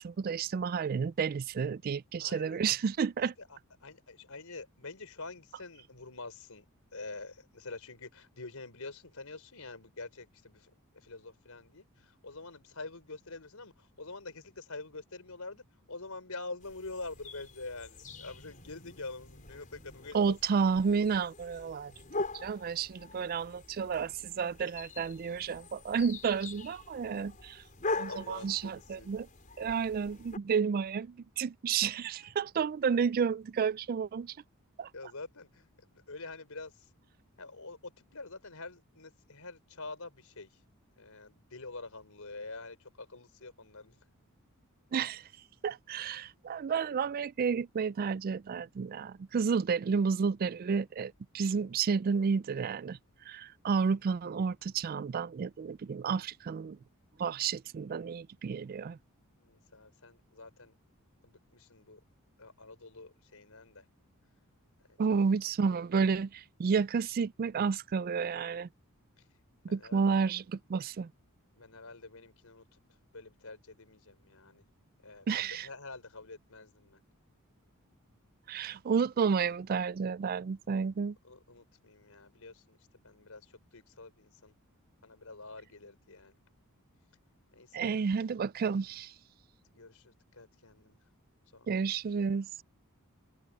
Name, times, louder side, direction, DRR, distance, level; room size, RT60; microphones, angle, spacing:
voice 1, 0.0-3.3 20.1-21.9 22.3-27.6 27.9-29.3 29.6-34.3 34.8-34.9 44.9-45.2 45.6-53.0 53.3-56.8 57.2-59.0 65.0-68.7 69.6-71.1 75.3-75.7 78.5-81.2 87.7-89.1 91.7-92.5, right 6 dB, 40° right, 0.3 m, -31 dB
voice 2, 2.2-2.5 3.4-6.6 6.9-20.4 28.1-29.1 34.9-35.6 35.9-36.7 37.4-40.5 41.0-44.0 59.4-60.8 61.2-62.0 62.4-63.8 65.1-65.2 69.7-70.1 71.5-72.6 73.1-74.6 75.0-77.0 81.2-82.8 83.0-83.4 83.7-84.5 85.0-86.3 87.5-88.0 89.7-91.0 91.5-91.7, left 3 dB, 75° left, 4.4 m, -46 dB
sound 1, 16.6-30.4, left 3 dB, 35° left, 5.8 m, -43 dB
head